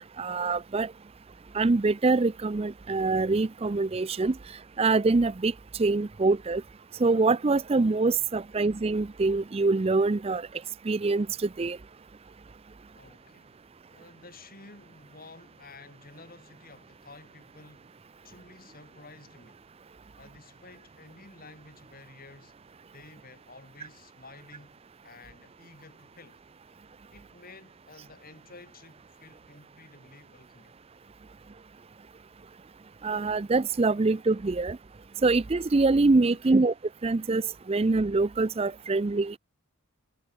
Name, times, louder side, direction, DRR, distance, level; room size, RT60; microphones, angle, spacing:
voice 1, 0.2-0.9 1.5-4.4 4.8-6.6 7.0-10.5 10.9-11.8 33.0-34.8 35.2-36.7 37.0-39.4, right 3 dB, 25° right, 0.4 m, -24 dB
voice 2, 12.9-13.6 13.9-17.9 18.2-19.6 20.2-22.6 22.9-26.4 27.1-30.8 36.3-36.6, left 3 dB, 40° left, 4.1 m, -52 dB
head